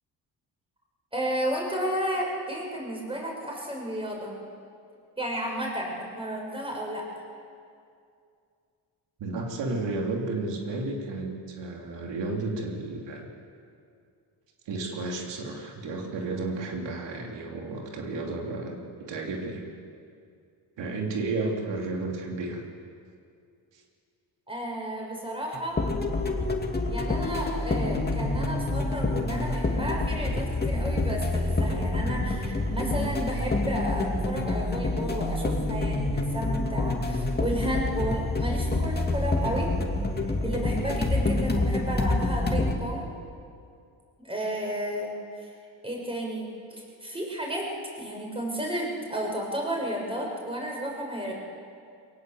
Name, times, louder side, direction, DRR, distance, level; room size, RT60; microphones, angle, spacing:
voice 1, 1.1-4.3 5.2-7.1 24.5-25.8 26.9-39.7 40.2-43.1 44.2-45.1 45.4-45.5 45.8-47.7 48.0-51.3, right 1 dB, 15° right, -1 dB, 6.3 m, -32 dB
voice 2, 9.2-13.3 14.6-19.6 20.8-22.6 23.7-23.8, right 3 dB, 85° right, 0 dB, 3.1 m, -32 dB
sound 1, 25.5-42.7, left 2 dB, 25° left, 2.5 m, -27 dB
23.0 x 19.0 x 7.9 m, 2.4 s
cardioid pair, 105°, 42 cm